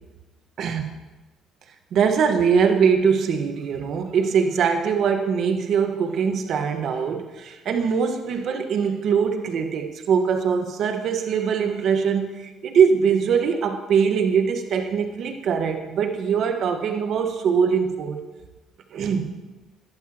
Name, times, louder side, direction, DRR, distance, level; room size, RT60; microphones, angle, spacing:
voice 1, 0.6-0.9 1.9-18.2 18.9-19.4, right 6 dB, 65° right, 5 dB, 1.5 m, -22 dB
19.0 x 11.5 x 3.1 m, 1.1 s
supercardioid pair, 75°, 0 cm